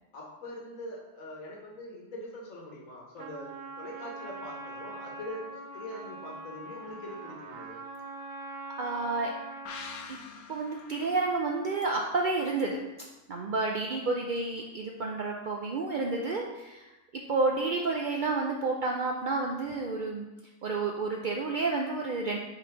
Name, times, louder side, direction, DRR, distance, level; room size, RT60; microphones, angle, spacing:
voice 1, 0.1-3.5 3.8-7.8, left 1 dB, 70° left, -2 dB, 1.6 m, -43 dB
Trumpet, 3.2-10.1, right 2 dB, 55° right, 0.8 m, -43 dB
voice 2, 8.8-9.3 10.1-10.2 10.5-12.8 13.3-16.8 17.1-20.3 20.6-22.4, right 3 dB, 75° right, 0 dB, 0.4 m, -30 dB
sound 1, 9.7-13.1 13.4-13.5, left 5 dB, 90° left, 1.1 m, -47 dB
5.9 x 4.1 x 4.5 m, 1.0 s
omnidirectional pair, 1.5 m